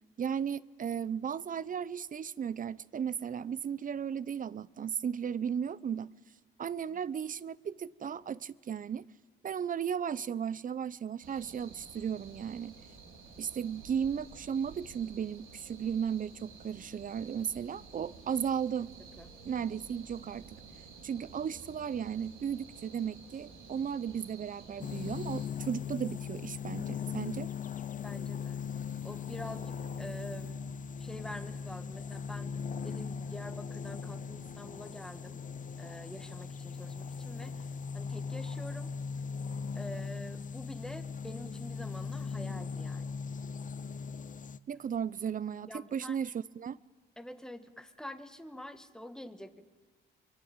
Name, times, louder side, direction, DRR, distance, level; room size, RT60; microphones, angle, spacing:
voice 1, 0.2-6.1 6.6-9.0 9.4-12.7 13.4-18.9 19.4-20.5 21.0-27.5 44.7-46.8, right 8 dB, 45° right, 0.8 m, -35 dB
sound 1, 11.2-25.5, right 5 dB, 85° right, 4.5 m, -52 dB
sound 2, 24.8-44.6, left 6 dB, 40° left, 0.8 m, -39 dB
voice 2, 28.0-28.6 29.0-30.7 31.0-32.6 32.8-35.4 35.8-37.7 37.9-38.9 39.8-43.1 45.7-46.2 47.2-49.7, left 1 dB, 5° left, 1.9 m, -46 dB
26.0 x 23.5 x 9.0 m
cardioid pair, 90°, 20 cm